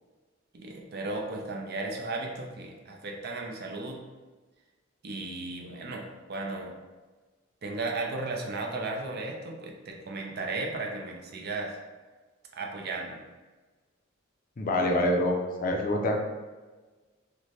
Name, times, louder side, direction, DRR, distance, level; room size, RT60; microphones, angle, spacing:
voice 1, 0.5-4.0 5.0-6.8 7.6-11.8 12.5-13.2, right 2 dB, 55° right, 1 dB, 0.5 m, -35 dB
voice 2, 14.6-16.2, left 1 dB, 45° left, 2 dB, 0.4 m, -26 dB
3.2 x 2.1 x 3.9 m, 1.3 s
head